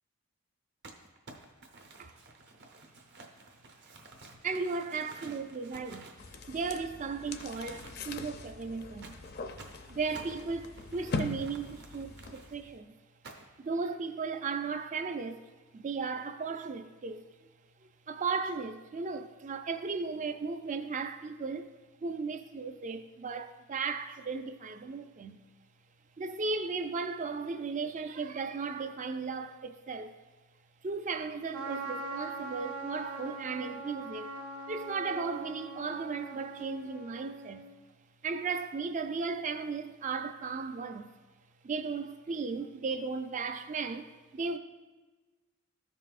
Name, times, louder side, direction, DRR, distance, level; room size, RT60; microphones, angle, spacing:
Crumpling crinkling, 0.8-6.9 7.2-8.2 9.0-12.5 13.2-13.7, right 2 dB, 50° right, 0.8 m, -52 dB
voice 1, 4.4-6.1 6.5-9.2 9.9-12.9 13.6-15.5 15.7-17.2 18.1-21.7 22.0-25.4 26.2-30.2 30.8-34.3 34.7-37.6 38.2-41.1 41.6-44.6, right 4 dB, 35° right, 0.4 m, -36 dB
sound 1, 6.2-12.8, left 3 dB, 45° left, 0.5 m, -41 dB
Trumpet, 31.5-37.7, right 3 dB, 90° right, 1.3 m, -42 dB
14.0 x 5.5 x 2.5 m
head